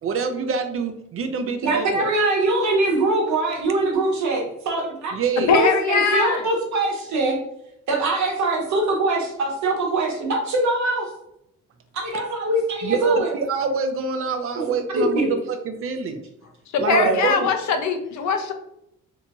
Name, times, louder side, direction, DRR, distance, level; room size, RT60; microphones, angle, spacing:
voice 1, 0.0-2.1 5.1-5.5 12.8-16.2 16.8-17.5, right 5 dB, 50° right, 7 dB, 0.4 m, -26 dB
voice 2, 1.6-5.1 5.5-7.4 7.9-11.1 11.9-13.3 14.6-15.3 16.9-17.2, right 2 dB, 70° right, 0 dB, 1.0 m, -22 dB
voice 3, 5.5-6.5 16.7-18.5, left 6 dB, 70° left, 6 dB, 0.5 m, -21 dB
2.8 x 2.8 x 2.2 m, 0.80 s
cardioid pair, 90°, 30 cm